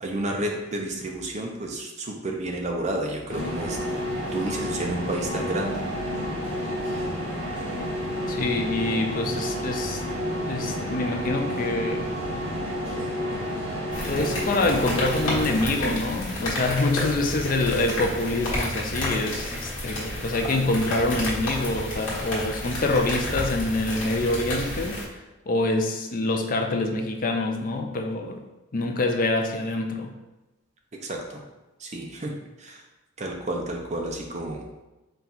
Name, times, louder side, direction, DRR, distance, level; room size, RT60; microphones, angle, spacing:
voice 1, 0.0-3.8 4.3-5.9 30.9-31.4 31.8-32.3 32.6-32.8 33.2-34.7, right 1 dB, 35° right, 1 dB, 0.5 m, -31 dB
sound 1, 3.3-15.7, equal, 85° right, 1.3 m, -30 dB
voice 2, 8.3-10.0 10.5-12.1 14.0-25.0 25.5-28.4 28.7-30.1, left 2 dB, 40° left, 4 dB, 0.4 m, -26 dB
sound 2, 13.9-25.0, left 1 dB, 65° left, 1.2 m, -31 dB
4.3 x 2.3 x 3.9 m, 1.1 s
head